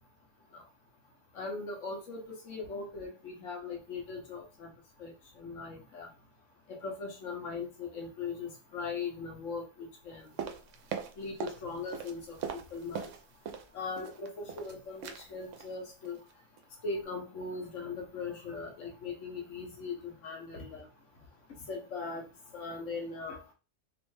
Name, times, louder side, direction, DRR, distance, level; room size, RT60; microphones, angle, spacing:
voice 1, 1.3-4.7 5.0-6.1 6.7-10.3 11.2-13.1 13.7-16.2 16.8-20.9 21.7-22.3 22.5-23.4, left 4 dB, 70° left, 1 dB, 1.3 m, -39 dB
sound 1, 10.4-11.6 11.9-13.7 14.0-14.7 15.0-15.2 15.5-15.7 16.1-16.3 16.6-16.7, right 7 dB, 75° right, 0.9 m, -40 dB
3.2 x 3.0 x 3.2 m, 0.33 s
omnidirectional pair, 1.3 m